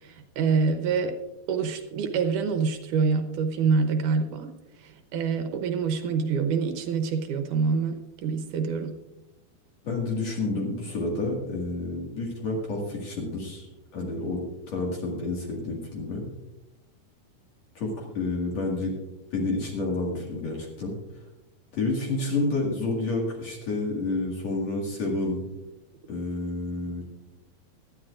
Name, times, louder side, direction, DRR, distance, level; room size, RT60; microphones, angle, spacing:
voice 1, 0.0-1.2 1.5-4.5 4.8-9.0, right 5 dB, 70° right, 6 dB, 2.3 m, -26 dB
voice 2, 9.8-16.3 17.7-19.0 19.3-21.0 21.7-25.5 26.1-27.0, left 2 dB, 50° left, -2 dB, 2.9 m, -29 dB
18.5 x 12.5 x 2.5 m, 0.95 s
omnidirectional pair, 4.1 m